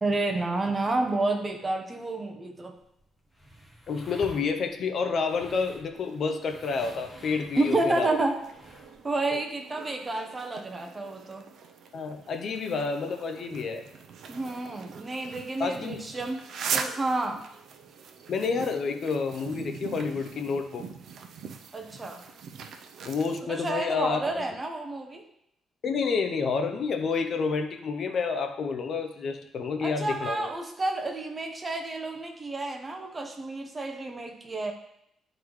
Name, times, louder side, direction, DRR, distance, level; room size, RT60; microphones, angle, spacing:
voice 1, 0.0-2.8 7.6-8.3 9.0-11.5 14.3-16.4 16.7-17.4 21.7-22.2 23.4-25.3 29.8-34.7, right 2 dB, 25° right, 4 dB, 0.9 m, -30 dB
sound 1, 2.8-9.1, equal, ahead, 1.2 m, -50 dB
voice 2, 3.9-8.1 9.3-9.4 11.9-13.9 15.6-16.0 18.3-20.8 23.0-24.4 25.8-30.5, left 5 dB, 50° left, 6 dB, 0.6 m, -29 dB
sound 2, 5.9-23.4, right 6 dB, 60° right, 0.6 m, -41 dB
11.5 x 3.9 x 3.2 m, 0.76 s
cardioid pair, 130°, 0 cm